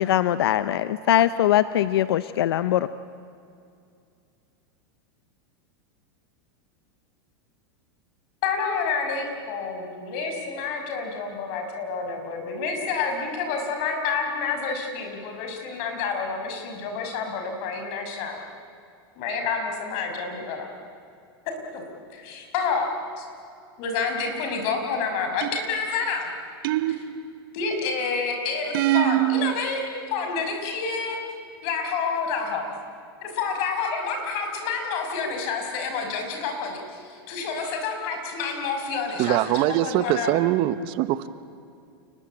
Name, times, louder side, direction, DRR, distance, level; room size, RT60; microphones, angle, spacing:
voice 1, 0.0-2.9, left 12 dB, 80° left, 15 dB, 0.7 m, -21 dB
voice 2, 8.4-18.4 19.2-20.7 21.7-21.8 22.1-22.9 23.2-23.3 23.8-26.3 26.9-27.0 27.5-29.8 30.1-31.2 31.6-32.6 33.2-40.3, left 5 dB, 50° left, 4 dB, 6.0 m, -29 dB
sound 1, 25.4-25.9 26.6-27.5 28.7-29.5, right 15 dB, 65° right, 1.3 m, -23 dB
voice 3, 39.2-41.3, right 14 dB, 45° right, 14 dB, 1.0 m, -23 dB
28.5 x 20.0 x 8.8 m, 2.4 s
supercardioid pair, 140°, 13 cm